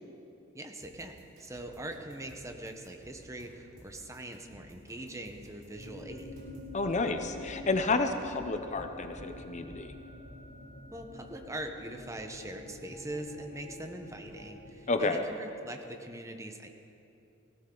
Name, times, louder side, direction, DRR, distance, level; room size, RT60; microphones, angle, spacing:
voice 1, 0.5-6.3 10.9-16.7, right 1 dB, 15° right, 4 dB, 1.0 m, -42 dB
sound 1, 0.8-6.7, equal, 45° right, 3.8 m, -56 dB
sound 2, 5.7-15.6, left 1 dB, 70° left, 2.6 m, -47 dB
voice 2, 6.7-9.9 14.9-15.2, left 3 dB, 35° left, 7 dB, 0.6 m, -30 dB
19.0 x 15.5 x 3.9 m, 2.7 s
head